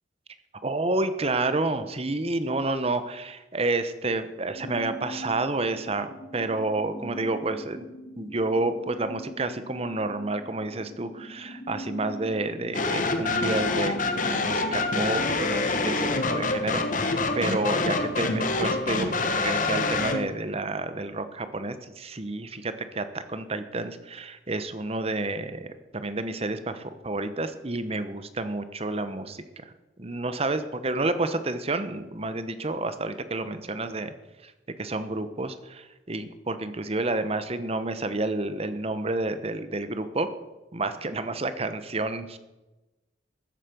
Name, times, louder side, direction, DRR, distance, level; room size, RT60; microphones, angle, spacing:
voice 1, 0.6-7.9 8.2-13.9 14.3-29.7 30.0-34.1 34.4-34.5 34.8-40.3 40.7-42.4, right 2 dB, 35° right, 11 dB, 1.0 m, -30 dB
sound 1, 4.5-19.2, left 1 dB, 90° left, 2.3 m, -42 dB
sound 2, 12.7-20.3, left 3 dB, 45° left, 1.3 m, -26 dB
14.0 x 8.3 x 6.9 m, 1.1 s
head